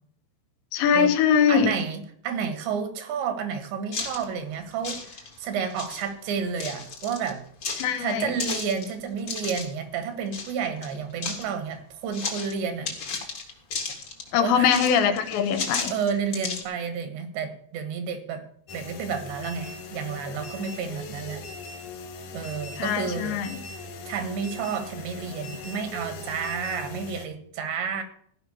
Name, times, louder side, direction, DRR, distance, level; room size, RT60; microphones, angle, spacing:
voice 1, 0.7-1.7 7.8-8.3 14.3-15.9 22.8-23.6, left 7 dB, 80° left, 3.2 m, -22 dB
voice 2, 1.5-7.4 8.0-12.9 14.4-14.7 15.9-18.4 18.7-21.4 22.3-23.4 24.1-28.0, right 6 dB, 75° right, 3.6 m, -31 dB
sound 1, 3.9-4.2 4.7-5.4 5.7-6.1 6.6-7.3 7.6-9.7 10.3-10.5 10.8-11.5 12.1-12.5 12.8-14.3 14.6-16.6, left 5 dB, 40° left, 1.9 m, -33 dB
sound 2, 18.7-27.3, left 4 dB, 60° left, 2.1 m, -40 dB
15.0 x 5.8 x 6.9 m
omnidirectional pair, 5.2 m